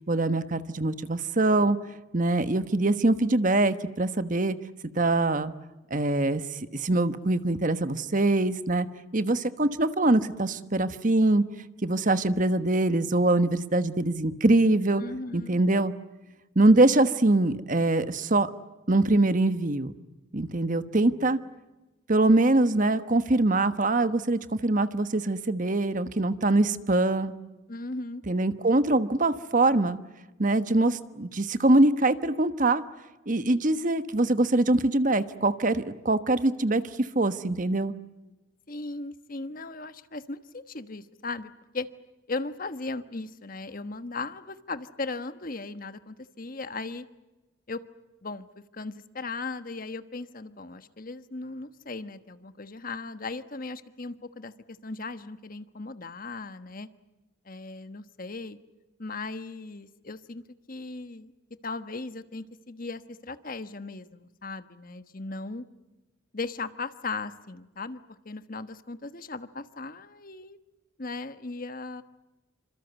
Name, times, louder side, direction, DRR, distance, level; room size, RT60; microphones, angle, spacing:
voice 1, 0.1-1.8 2.1-4.6 4.9-5.5 5.9-8.9 9.1-11.4 11.8-15.0 15.3-15.9 16.5-18.5 18.9-19.9 20.3-21.4 22.1-27.3 28.3-30.0 30.4-32.8 33.3-37.9, right 2 dB, 40° right, 11 dB, 1.2 m, -23 dB
voice 2, 15.0-15.6 27.7-28.2 38.7-41.9 42.3-47.1 47.7-47.8 48.2-48.5 48.7-56.9 57.4-58.6 59.0-61.3 61.6-65.6 66.3-70.6 71.0-72.0, left 3 dB, 45° left, 11 dB, 1.3 m, -37 dB
27.5 x 26.0 x 8.2 m, 1.1 s
head